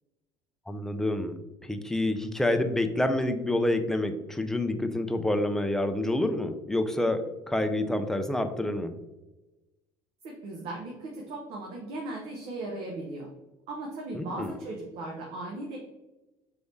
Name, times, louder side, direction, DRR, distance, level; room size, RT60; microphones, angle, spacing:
voice 1, 0.7-8.9 14.1-14.5, left 1 dB, 5° left, 7 dB, 0.4 m, -28 dB
voice 2, 10.2-13.3 13.7-15.8, right 2 dB, 60° right, 0 dB, 0.8 m, -37 dB
4.7 x 3.4 x 2.6 m, 1.1 s
supercardioid pair, 110°, 11 cm